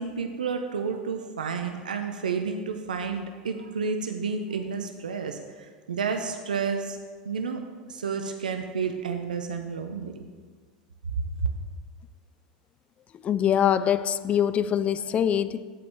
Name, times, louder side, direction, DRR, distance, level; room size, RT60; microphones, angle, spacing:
voice 1, 0.0-7.0 7.2-7.6 7.9-10.2 11.4-11.5, right 5 dB, 85° right, 5 dB, 0.5 m, -30 dB
voice 2, 13.2-15.6, left 9 dB, 30° left, 15 dB, 0.3 m, -24 dB
14.5 x 4.9 x 3.5 m, 1.5 s
hypercardioid pair, 85°, 4 cm